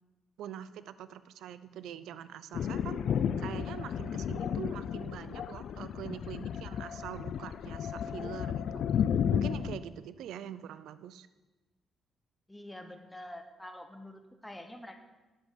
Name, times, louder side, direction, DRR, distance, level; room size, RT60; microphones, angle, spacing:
voice 1, 0.4-3.0 3.4-8.9 9.3-11.3, right 10 dB, 85° right, 15 dB, 0.4 m, -44 dB
Thunder, 2.5-9.8, left 8 dB, 70° left, 0.4 m, -33 dB
voice 2, 12.5-15.0, left 1 dB, 10° left, 6 dB, 1.2 m, -46 dB
8.8 x 7.3 x 5.2 m, 1.2 s
cardioid pair, 75°, 0 cm